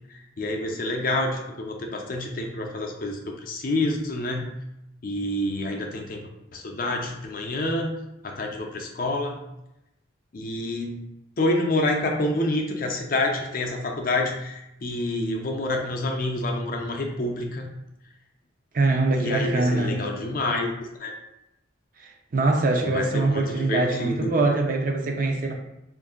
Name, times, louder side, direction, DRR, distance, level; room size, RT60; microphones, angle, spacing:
voice 1, 0.4-4.6 5.0-6.2 6.5-8.0 8.2-9.4 10.3-11.0 11.4-17.7 19.2-20.7 21.0-21.1 22.8-24.3, left 2 dB, 45° left, 2 dB, 0.5 m, -28 dB
voice 2, 18.7-20.0 22.0-25.5, right 2 dB, 45° right, 1 dB, 0.5 m, -23 dB
3.3 x 2.5 x 3.7 m, 0.87 s
head